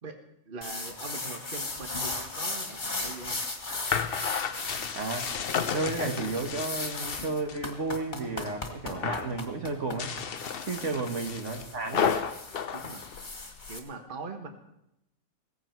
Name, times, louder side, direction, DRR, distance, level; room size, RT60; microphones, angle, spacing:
voice 1, 0.5-3.4 10.8-11.1 12.7-13.4 13.7-14.5, right 4 dB, 40° right, 5 dB, 1.4 m, -42 dB
sound 1, 0.6-13.8, left 3 dB, 35° left, 1.9 m, -37 dB
sound 2, 2.8-7.7 8.0-8.6 8.9-9.4 9.9-13.7, left 7 dB, 50° left, 0.8 m, -33 dB
voice 2, 4.9-5.3 5.7-10.1 10.6-12.1, right 3 dB, 60° right, 4 dB, 1.8 m, -32 dB
16.5 x 15.0 x 4.5 m, 0.82 s
omnidirectional pair, 1.5 m